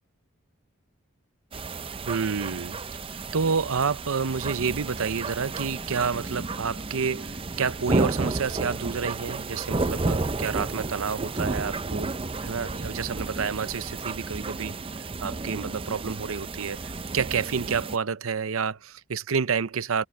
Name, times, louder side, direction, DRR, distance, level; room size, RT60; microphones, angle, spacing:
sound 1, 1.5-18.0, right 3 dB, 25° right, 0.6 m, -32 dB
voice 1, 2.0-2.8 3.3-12.2 12.4-14.8 15.2-20.1, right 5 dB, 85° right, 0.7 m, -29 dB
head